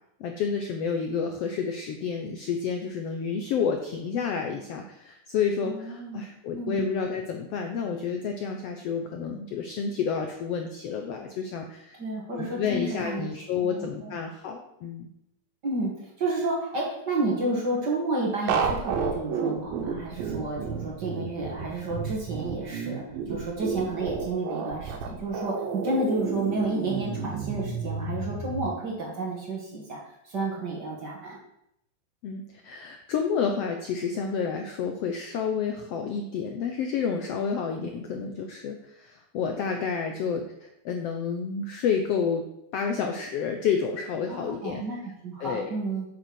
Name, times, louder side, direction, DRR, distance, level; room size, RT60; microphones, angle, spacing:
voice 1, 0.2-12.0 12.3-15.1 32.2-42.4 42.7-44.8 45.4-45.7, left 6 dB, 85° left, 4 dB, 1.3 m, -30 dB
voice 2, 5.6-6.2 6.5-6.9 12.0-13.3 13.6-14.2 15.6-15.9 16.2-30.0 30.2-31.4 44.3-46.1, right 2 dB, 35° right, -3 dB, 2.2 m, -31 dB
sound 1, 18.5-28.7, right 5 dB, 85° right, 2.8 m, -31 dB
8.0 x 6.8 x 6.3 m, 0.81 s
omnidirectional pair, 3.9 m